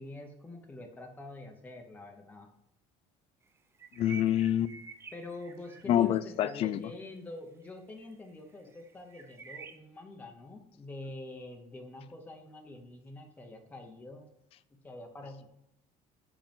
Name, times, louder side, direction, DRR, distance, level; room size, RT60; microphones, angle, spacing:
voice 1, 0.0-2.5 5.1-14.3 14.8-15.5, left 2 dB, 10° left, 0.9 m, -46 dB
sound 1, 3.7-6.2 6.5-6.9 7.7-7.8 8.0-8.3 8.7-9.8, right 5 dB, 15° right, 0.6 m, -49 dB
voice 2, 4.0-4.8 5.9-6.8, left 11 dB, 40° left, 0.4 m, -27 dB
7.8 x 5.9 x 5.3 m
cardioid pair, 170°, 15 cm